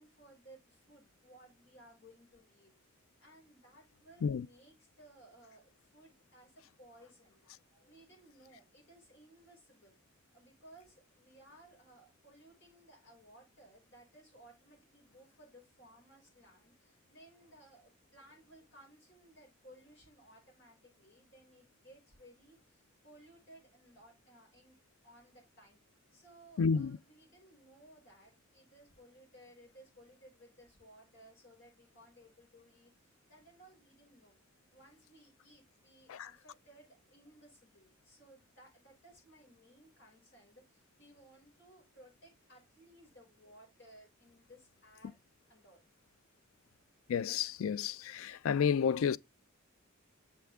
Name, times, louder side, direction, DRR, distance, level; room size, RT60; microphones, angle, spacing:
voice 1, 0.0-10.0 10.3-24.8 25.0-25.8 26.1-34.3 34.7-45.2 45.5-45.8, right 1 dB, 60° left, 5.6 m, -60 dB
voice 2, 26.6-27.0 36.1-36.3 47.1-49.2, left 6 dB, 85° left, 0.4 m, -31 dB
6.9 x 5.7 x 3.5 m
head